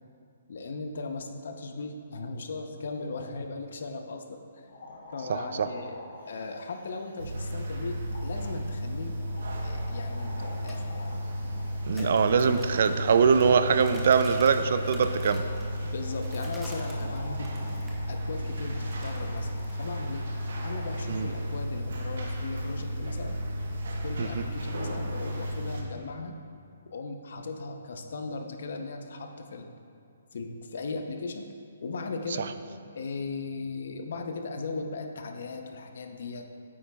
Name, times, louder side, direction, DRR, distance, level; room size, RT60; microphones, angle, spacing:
voice 1, 0.5-4.7 5.1-6.0 6.2-9.1 9.6-11.2 11.9-12.3 15.9-17.5 18.1-20.2 20.6-23.4 24.0-26.4 26.9-29.7 30.3-31.5 31.8-32.5 32.9-36.5, left 3 dB, 60° left, 5 dB, 0.7 m, -37 dB
sound 1, 4.7-20.9, left 2 dB, 85° left, 1.9 m, -49 dB
voice 2, 5.3-5.7 11.9-15.4 21.1-21.3 24.2-24.3, right 6 dB, 50° right, 11 dB, 0.3 m, -23 dB
sound 2, 7.2-25.8, equal, 65° right, 1.1 m, -33 dB
sound 3, 10.7-18.1 18.4-20.0, right 1 dB, 5° right, 0.7 m, -49 dB
8.9 x 8.5 x 2.3 m, 2.4 s
hypercardioid pair, 175°, 0 cm